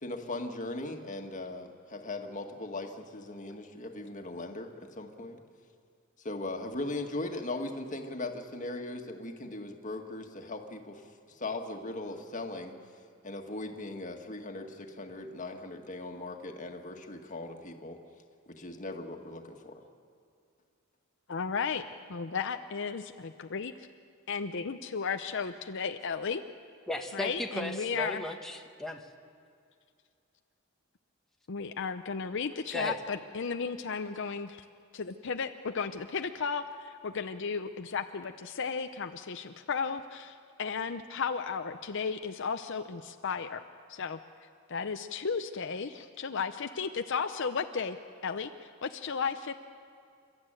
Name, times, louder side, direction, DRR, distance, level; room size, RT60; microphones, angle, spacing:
voice 1, 0.0-5.4 6.2-11.0 11.3-12.7 13.2-18.0 18.6-19.8, left 2 dB, 40° left, 3 dB, 1.8 m, -39 dB
voice 2, 21.3-21.8 22.1-23.7 24.3-26.4 27.1-28.2 31.5-34.6 34.9-43.6 43.9-44.2 44.7-48.0 48.2-48.5 48.8-49.5, left 5 dB, 60° left, 7 dB, 0.7 m, -34 dB
voice 3, 26.9-29.0 32.7-33.0, left 1 dB, ahead, 1 dB, 1.2 m, -36 dB
29.0 x 12.5 x 9.0 m, 2.4 s
head